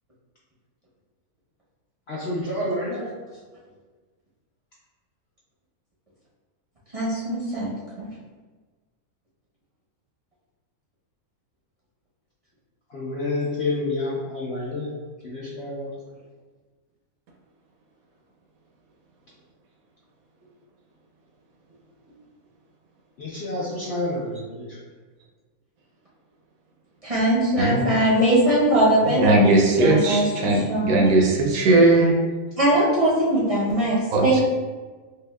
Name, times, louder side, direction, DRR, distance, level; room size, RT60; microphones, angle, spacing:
voice 1, 2.1-3.1 12.9-14.9 15.2-15.9 23.2-24.8, left 2 dB, 65° left, -6 dB, 0.6 m, -29 dB
voice 2, 6.9-8.1 27.0-29.5 29.8-31.0 32.6-34.4, right 1 dB, 40° right, -8 dB, 0.5 m, -21 dB
voice 3, 29.2-32.2 34.1-34.4, right 2 dB, 70° right, -1 dB, 1.0 m, -18 dB
5.2 x 2.1 x 2.2 m, 1.3 s
omnidirectional pair, 1.6 m